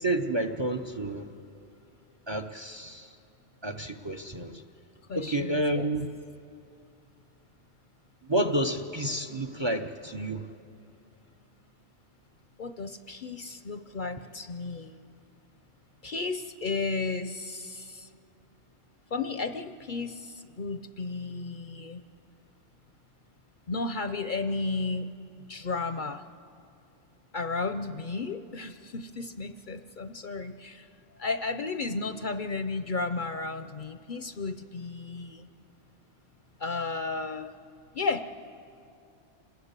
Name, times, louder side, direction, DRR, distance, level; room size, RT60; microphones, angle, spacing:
voice 1, 0.0-1.2 2.3-3.1 3.6-4.6 5.2-6.1 8.3-10.5, right 1 dB, 30° right, 8 dB, 0.7 m, -30 dB
voice 2, 5.1-5.9 12.6-14.9 16.0-18.1 19.1-22.0 23.7-25.1 25.5-26.2 27.3-30.9 31.2-35.5 36.6-37.5 37.9-38.2, left 3 dB, 50° left, 10 dB, 0.7 m, -33 dB
26.5 x 20.0 x 8.1 m, 2.6 s
omnidirectional pair, 1.2 m